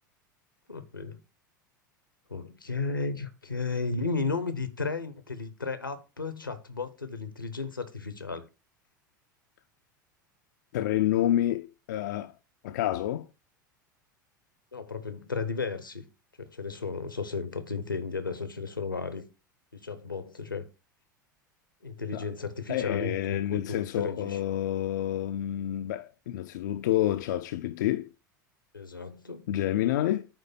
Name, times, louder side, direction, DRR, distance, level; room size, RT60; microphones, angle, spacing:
voice 1, 0.7-1.2 2.3-8.4 14.7-16.0 16.4-19.3 19.7-20.6 21.8-24.4 28.7-29.5, left 4 dB, 90° left, 0.9 m, -34 dB
voice 2, 10.7-12.3 12.6-13.3 22.1-22.3 22.7-28.1 29.5-30.3, left 12 dB, 60° left, 0.4 m, -28 dB
8.8 x 3.3 x 5.5 m
figure-of-eight pair, 80°, 11 cm